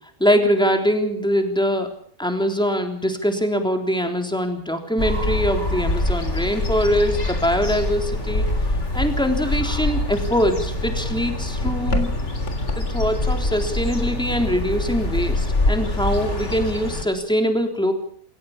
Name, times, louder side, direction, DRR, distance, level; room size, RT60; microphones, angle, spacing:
voice 1, 0.2-1.9 2.2-8.5 8.9-12.1 12.8-17.9, equal, 5° left, 4 dB, 3.5 m, -22 dB
sound 1, 5.0-17.0, left 2 dB, 45° left, 3.8 m, -24 dB
27.0 x 15.5 x 7.3 m, 0.63 s
omnidirectional pair, 1.7 m